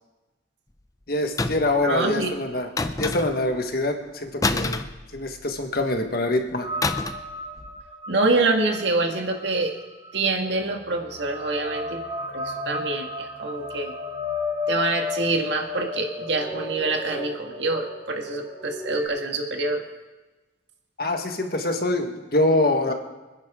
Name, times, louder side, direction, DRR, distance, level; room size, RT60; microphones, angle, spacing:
voice 1, 1.1-2.7 3.0-4.8 5.1-6.7 21.0-22.9, left 2 dB, 55° left, 4 dB, 1.5 m, -24 dB
sound 1, 1.4-1.8 2.8-3.5 4.4-5.6 6.8-7.3 7.6-7.8, left 3 dB, 20° left, 0.5 m, -27 dB
voice 2, 1.8-2.3 8.1-9.7 10.1-12.0 12.3-13.9 14.7-19.8, right 2 dB, 75° right, 3 dB, 1.9 m, -25 dB
sound 2, 6.6-19.1, left 3 dB, 25° right, 2.3 m, -34 dB
26.0 x 10.5 x 3.7 m, 1.2 s
head